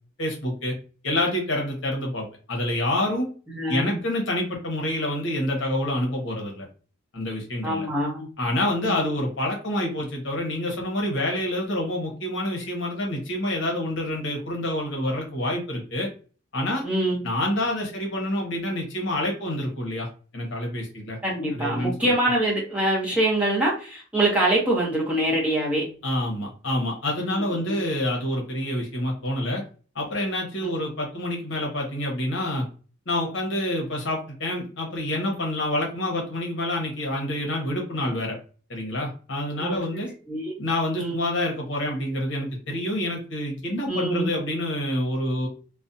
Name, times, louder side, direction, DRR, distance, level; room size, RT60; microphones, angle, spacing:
voice 1, 0.2-0.7 1.0-3.3 3.7-6.7 7.1-7.9 8.4-16.1 16.5-16.8 17.2-20.1 20.3-21.2 21.5-22.1 26.0-29.6 29.9-32.7 33.1-38.4 38.7-40.1 40.6-45.5, left 1 dB, 60° left, 0 dB, 0.9 m, -27 dB
voice 2, 3.5-4.0 7.6-8.3 8.8-9.0 16.8-17.3 21.2-25.9 27.3-27.8 39.6-39.8 40.3-40.5 41.0-41.1 43.9-44.3, right 1 dB, 5° right, -5 dB, 0.8 m, -24 dB
2.4 x 2.1 x 2.6 m, 0.37 s
head